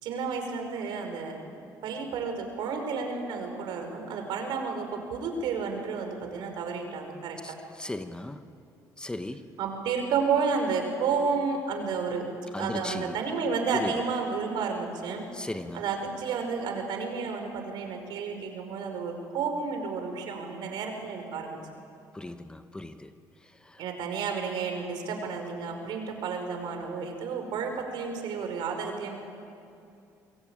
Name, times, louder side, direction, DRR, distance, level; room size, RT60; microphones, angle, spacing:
voice 1, 0.0-1.4 1.8-7.6 9.6-12.3 12.6-15.3 15.7-21.6 23.8-29.1, right 5 dB, 80° right, 5 dB, 5.1 m, -31 dB
voice 2, 7.4-8.4 9.0-9.4 12.5-13.2 13.7-13.9 15.3-15.8 22.1-23.1 23.7-23.8, left 1 dB, 10° left, 9 dB, 1.2 m, -36 dB
28.0 x 22.0 x 9.0 m, 2.6 s
cardioid pair, 105°, 8 cm